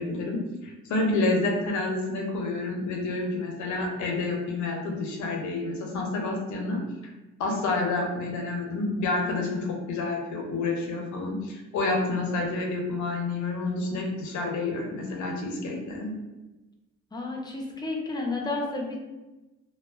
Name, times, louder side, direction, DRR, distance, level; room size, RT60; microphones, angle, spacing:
voice 1, 0.0-6.8 7.4-16.1, left 2 dB, 70° left, 1 dB, 0.7 m, -29 dB
voice 2, 17.1-19.0, left 2 dB, 15° left, 0 dB, 0.5 m, -31 dB
2.9 x 2.1 x 2.3 m, 1.1 s
cardioid pair, 90°, 30 cm